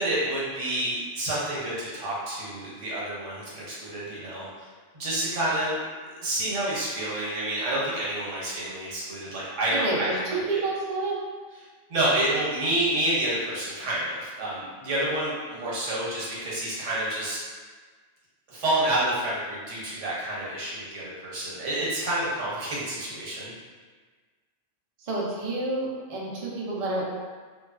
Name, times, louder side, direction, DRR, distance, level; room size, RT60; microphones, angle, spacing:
voice 1, 0.0-4.7 4.9-5.7 6.1-10.6 11.9-17.4 18.5-23.5, right 1 dB, 80° right, -6 dB, 1.2 m, -29 dB
voice 2, 9.7-11.2 25.0-27.0, right 2 dB, 50° right, -5 dB, 0.4 m, -29 dB
3.0 x 2.3 x 2.3 m, 1.5 s
omnidirectional pair, 1.3 m